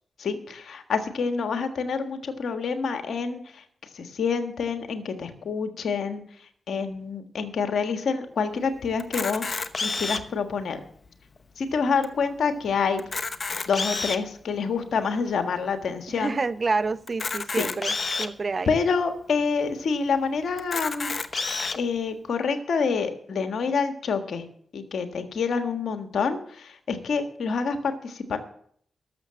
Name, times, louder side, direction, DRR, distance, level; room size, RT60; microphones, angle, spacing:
voice 1, 0.2-3.6 3.9-6.2 6.7-9.6 9.8-10.8 11.6-13.0 13.7-16.4 17.6-17.7 18.7-21.1 21.7-24.4 24.7-28.4, left 5 dB, 75° left, 7 dB, 1.5 m, -27 dB
Camera, 9.0-10.4 11.0-11.1 11.4-11.5 12.0-12.1 12.9-14.3 14.9-15.0 17.1-18.3 19.0-19.1 19.4-19.5 20.6-21.8, left 4 dB, 50° left, 0.9 m, -29 dB
voice 2, 16.2-18.7, right 4 dB, 50° right, 14 dB, 0.8 m, -28 dB
12.0 x 7.1 x 7.6 m, 0.63 s
supercardioid pair, 45°, 0 cm